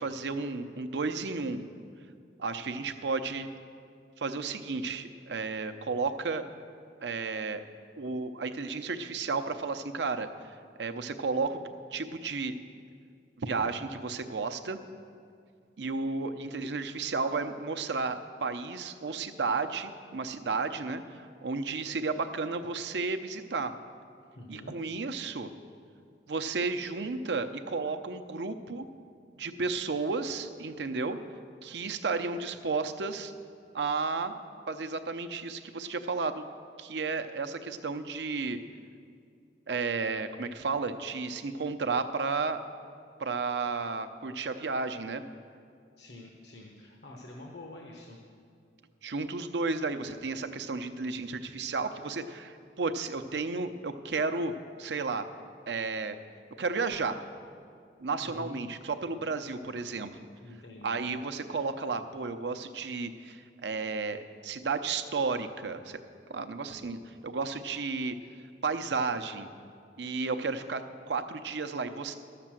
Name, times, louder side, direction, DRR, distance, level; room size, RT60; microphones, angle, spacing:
voice 1, 0.0-1.7 2.4-3.5 4.2-6.4 7.0-7.6 8.0-10.5 10.8-11.6 11.9-12.5 13.4-14.8 15.8-23.7 24.5-25.5 26.3-28.9 29.4-31.2 31.6-33.3 33.7-34.3 34.7-36.4 36.8-38.6 39.7-42.6 43.2-45.2 49.0-54.5 54.8-55.3 55.7-56.2 56.6-57.2 58.0-60.3 60.8-66.0 66.3-68.2 68.6-69.5 70.0-72.1, right 4 dB, 70° right, 9 dB, 0.7 m, -33 dB
voice 2, 24.3-24.8 46.0-48.2 58.2-58.6 60.4-61.0, left 1 dB, 80° left, -1 dB, 1.1 m, -47 dB
12.5 x 6.7 x 7.5 m, 2.3 s
head